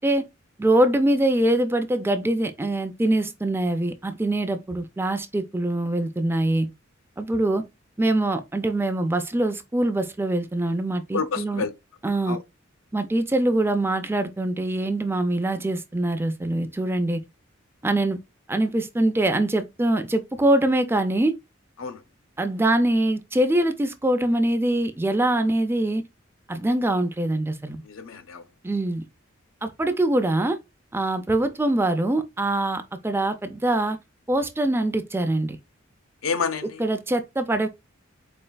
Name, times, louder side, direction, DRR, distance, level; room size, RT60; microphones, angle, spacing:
voice 1, 0.6-6.7 7.2-7.6 8.0-11.6 12.0-12.4 12.9-17.2 17.8-18.2 18.5-21.3 22.4-26.1 26.5-27.8 28.6-29.0 29.6-30.6 30.9-34.0 34.3-35.6 36.8-37.7, right 1 dB, 10° right, 0.4 m, -23 dB
voice 2, 11.1-11.7 12.3-12.4 21.8-22.0 27.8-28.4 36.2-36.8, left 5 dB, 80° left, 0.6 m, -29 dB
4.4 x 3.2 x 2.2 m
head